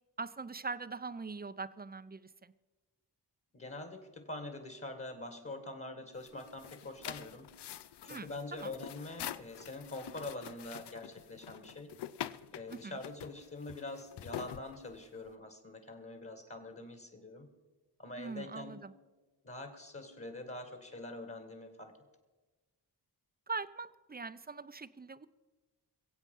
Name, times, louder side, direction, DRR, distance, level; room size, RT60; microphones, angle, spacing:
voice 1, 0.2-2.5 8.1-8.7 12.7-13.0 18.2-18.9 23.5-25.3, right 4 dB, 25° right, 14 dB, 0.6 m, -42 dB
voice 2, 3.5-7.5 8.0-12.0 12.5-17.5 18.0-18.9 19.4-21.9, left 2 dB, 35° left, 7 dB, 1.9 m, -45 dB
sound 1, 6.1-15.3, left 11 dB, 80° left, 0.6 m, -46 dB
22.0 x 8.1 x 5.5 m, 1.2 s
cardioid pair, 60°, 40 cm